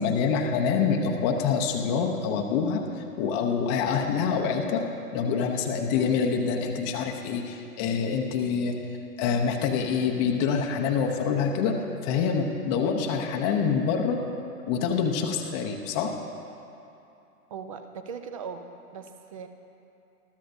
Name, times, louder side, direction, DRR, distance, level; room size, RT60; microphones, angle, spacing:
voice 1, 0.0-2.8 3.2-4.8 5.1-8.8 9.2-11.8 12.0-14.2 14.7-16.1, left 6 dB, 20° left, 2 dB, 0.7 m, -26 dB
voice 2, 17.5-18.6 18.9-19.5, right 6 dB, 25° right, 8 dB, 0.5 m, -38 dB
21.0 x 13.5 x 2.6 m, 2.7 s
hypercardioid pair, 130°, 46 cm